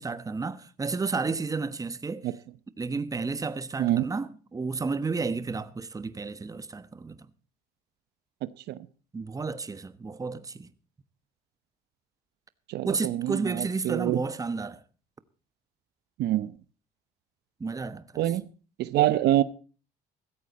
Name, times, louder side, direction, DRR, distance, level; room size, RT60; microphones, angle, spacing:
voice 1, 0.0-2.3 2.8-7.3 9.1-10.7 12.8-14.8 17.6-18.2, right 4 dB, 20° right, 1.1 m, -32 dB
voice 2, 8.4-8.8 12.7-14.2 16.2-16.5 18.2-18.5 18.8-19.4, right 14 dB, 75° right, 0.9 m, -26 dB
16.5 x 14.5 x 4.2 m
cardioid pair, 110°, 17 cm